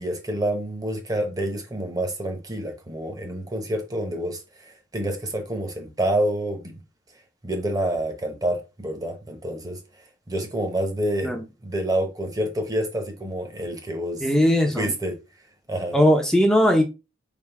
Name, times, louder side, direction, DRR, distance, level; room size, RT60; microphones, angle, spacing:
voice 1, 0.0-6.8 7.4-9.8 10.3-11.3 11.6-14.3 14.8-15.2 15.7-16.0, right 1 dB, 20° right, 1.0 m, -28 dB
voice 2, 14.2-14.9 15.9-16.8, equal, 5° left, 0.6 m, -19 dB
3.6 x 3.1 x 4.6 m
head